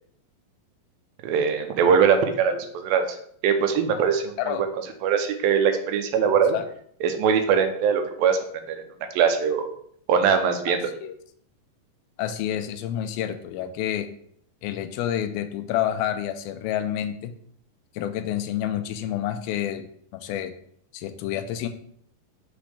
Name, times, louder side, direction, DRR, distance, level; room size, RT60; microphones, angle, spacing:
voice 1, 1.2-3.1 3.4-4.6 5.0-6.6 7.0-8.4 8.7-8.8 9.1-9.7 10.1-10.9, right 7 dB, 85° right, 6 dB, 2.4 m, -21 dB
voice 2, 10.7-11.2 12.2-14.1 14.6-17.3 18.0-19.9 20.1-20.5 20.9-21.7, left 11 dB, 90° left, 9 dB, 2.4 m, -29 dB
6.2 x 5.1 x 3.3 m, 0.65 s
omnidirectional pair, 4.2 m